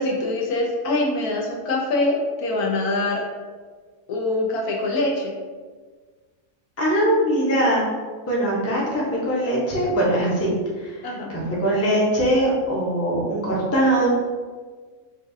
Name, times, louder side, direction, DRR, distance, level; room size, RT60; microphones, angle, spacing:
voice 1, 0.0-3.2 4.1-5.3 11.0-11.3, left 2 dB, 90° left, -2 dB, 1.3 m, -24 dB
voice 2, 6.8-7.9 8.3-10.5 10.8-14.1, right 1 dB, 15° left, -5 dB, 0.5 m, -21 dB
5.1 x 2.4 x 2.6 m, 1.5 s
omnidirectional pair, 1.5 m